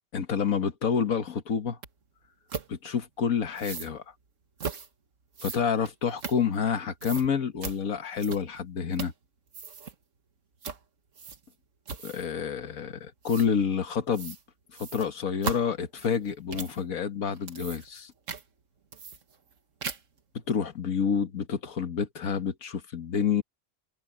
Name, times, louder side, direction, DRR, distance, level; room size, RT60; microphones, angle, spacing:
voice 1, 0.1-1.8 2.7-4.0 5.4-9.1 12.0-14.4 14.8-18.1 20.5-23.4, left 7 dB, 85° left, 1.8 m, -28 dB
sound 1, 1.8-1.9 2.5-2.7 3.5-3.9 4.6-4.9 5.3-6.7 7.0-7.3 7.6-7.8 8.2-8.6 8.9-9.2 9.5-9.9 10.6-10.8 11.2-11.5 11.9-12.3 13.2-13.5 14.1-14.4 14.7-16.8 17.3-18.0 18.3-18.4 18.9-19.5 19.8-20.2, right 6 dB, 65° right, 1.8 m, -38 dB
omnidirectional pair, 1.4 m